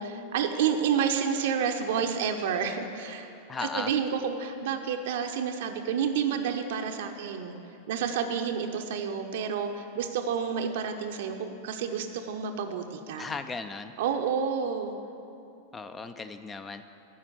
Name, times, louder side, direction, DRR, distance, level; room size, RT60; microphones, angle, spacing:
voice 1, 0.0-3.3 3.7-7.5 7.9-13.3 14.0-14.9, right 7 dB, 55° right, 5 dB, 0.6 m, -29 dB
voice 2, 3.5-3.9 13.2-13.9 15.7-16.8, left 4 dB, 20° left, 10 dB, 0.4 m, -36 dB
11.0 x 5.1 x 8.1 m, 2.9 s
figure-of-eight pair, 90°, 0 cm